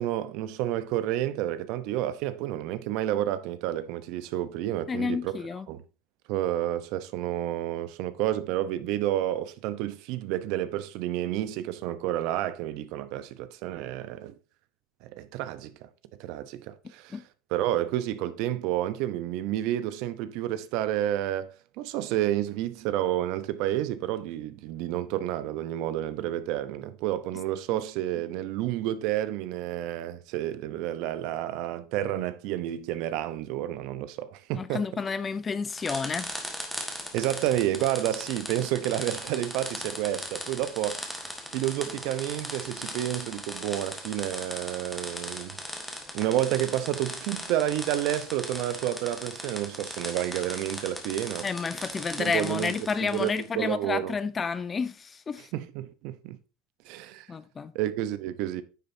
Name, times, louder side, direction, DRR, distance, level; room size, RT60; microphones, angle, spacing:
voice 1, 0.0-5.3 5.7-5.8 6.3-14.3 15.0-15.9 16.2-17.2 17.5-34.8 37.1-41.0 41.5-45.6 46.1-51.5 52.2-52.7 53.0-54.1 55.5-56.4 56.8-57.3 57.7-58.6, right 13 dB, 60° right, 0.8 m, -30 dB
voice 2, 4.9-5.7 17.1-17.2 27.7-27.8 34.5-36.4 51.4-55.5 57.3-57.7, left 5 dB, 20° left, 0.6 m, -30 dB
sound 1, 35.7-53.5, equal, ahead, 1.6 m, -38 dB
9.5 x 7.0 x 2.7 m
supercardioid pair, 140°, 0 cm